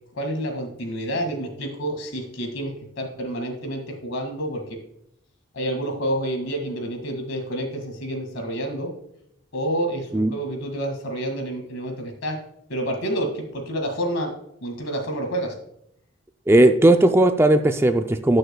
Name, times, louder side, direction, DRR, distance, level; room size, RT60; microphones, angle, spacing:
voice 1, 0.1-4.8 5.5-8.9 9.5-12.4 12.7-14.3 14.6-15.5, right 1 dB, 80° left, 3 dB, 1.9 m, -28 dB
voice 2, 16.5-18.4, right 1 dB, 10° right, 8 dB, 0.3 m, -17 dB
18.5 x 6.4 x 2.2 m, 0.77 s
head